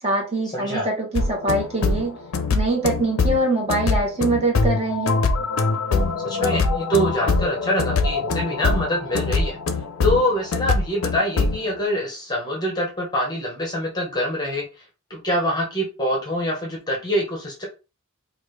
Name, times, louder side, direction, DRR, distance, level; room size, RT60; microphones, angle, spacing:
voice 1, 0.0-2.2 2.5-5.2, right 2 dB, 30° right, -1 dB, 1.1 m, -23 dB
voice 2, 0.5-0.9 6.2-9.6 10.0-14.6 15.1-17.7, equal, 20° left, -1 dB, 0.9 m, -25 dB
sound 1, 1.2-11.7, left 3 dB, 90° left, 0.4 m, -23 dB
3.1 x 2.4 x 3.2 m, 0.30 s
head